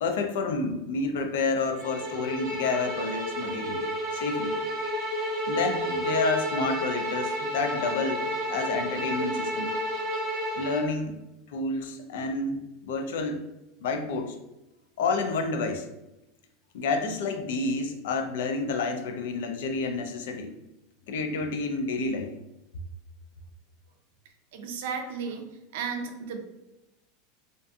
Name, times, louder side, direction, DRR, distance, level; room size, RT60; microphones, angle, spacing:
voice 1, 0.0-3.8 4.1-4.6 5.5-9.7 10.6-11.2 11.5-13.4 13.8-14.4 15.0-15.9 16.7-20.5 21.1-22.3, left 3 dB, 80° left, 5 dB, 0.4 m, -29 dB
Bowed string instrument, 1.8-10.9, equal, 55° right, 0.8 m, -31 dB
voice 2, 24.5-25.5 25.7-26.4, right 6 dB, 75° right, 5 dB, 0.4 m, -33 dB
2.5 x 2.5 x 2.3 m, 0.94 s
supercardioid pair, 175°, 0 cm